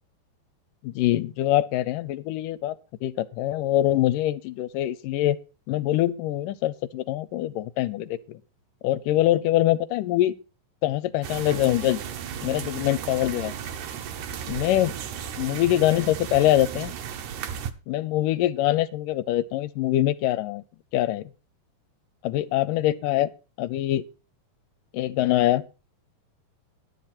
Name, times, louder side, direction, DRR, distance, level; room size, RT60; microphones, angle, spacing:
voice 1, 0.8-2.8 3.0-5.4 5.7-8.4 8.8-10.4 10.8-12.0 12.4-13.6 14.5-14.9 15.4-16.9 17.9-20.6 20.9-21.3 22.2-23.3 23.6-24.0 24.9-25.7, left 14 dB, 80° left, 2.3 m, -24 dB
sound 1, 11.2-17.7, right 8 dB, 70° right, 2.1 m, -35 dB
12.0 x 10.5 x 4.3 m
omnidirectional pair, 4.0 m